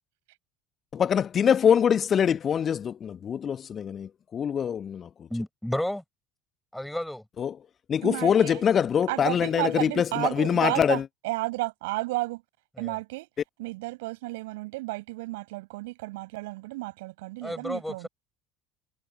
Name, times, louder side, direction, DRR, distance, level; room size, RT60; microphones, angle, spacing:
voice 1, 0.9-5.3 7.4-7.6 7.9-11.0, left 8 dB, 35° left, 1.2 m, -24 dB
voice 2, 5.3-6.0 6.7-7.2 12.8-13.0 17.4-18.1, left 1 dB, 5° left, 5.4 m, -32 dB
voice 3, 8.0-8.6 9.1-11.0 11.2-12.4 12.8-13.3 13.6-18.1, right 22 dB, 60° right, 7.3 m, -32 dB
figure-of-eight pair, 65°, 0 cm